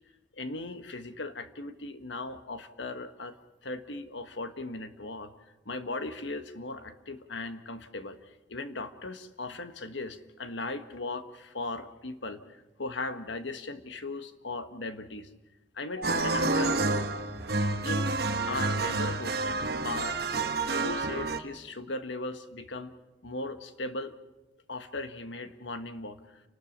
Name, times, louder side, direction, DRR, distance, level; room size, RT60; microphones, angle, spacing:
voice 1, 0.4-3.4 3.6-5.3 5.6-8.2 8.5-15.3 15.7-16.8 17.8-19.6 19.8-20.2 20.8-22.9 23.2-24.1 24.7-26.4, left 2 dB, 80° left, 9 dB, 1.5 m, -38 dB
sound 1, 16.0-21.4, right 3 dB, 55° right, 1.2 m, -29 dB
30.0 x 12.5 x 7.4 m, 0.99 s
head